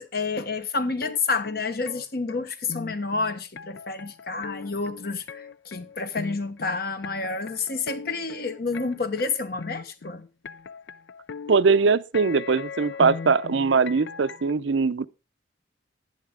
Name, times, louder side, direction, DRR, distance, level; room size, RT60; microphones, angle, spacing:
voice 1, 0.0-10.2, left 4 dB, 50° left, 1.1 m, -29 dB
sound 1, 1.0-14.5, left 5 dB, 70° left, 0.5 m, -39 dB
voice 2, 11.5-15.1, right 4 dB, 75° right, 0.6 m, -21 dB
11.0 x 11.0 x 3.7 m
head